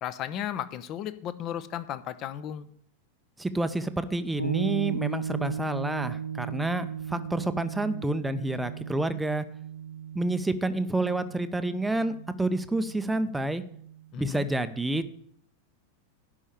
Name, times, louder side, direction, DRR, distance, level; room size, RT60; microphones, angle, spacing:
voice 1, 0.0-2.7 14.1-14.5, left 10 dB, 35° left, 14 dB, 0.8 m, -35 dB
voice 2, 3.4-9.5 10.1-13.6 14.2-15.1, right 2 dB, 5° right, 10 dB, 0.7 m, -29 dB
sound 1, 4.4-14.1, right 7 dB, 85° left, 0.8 m, -36 dB
11.0 x 5.6 x 8.4 m, 0.64 s
figure-of-eight pair, 90°, 0 cm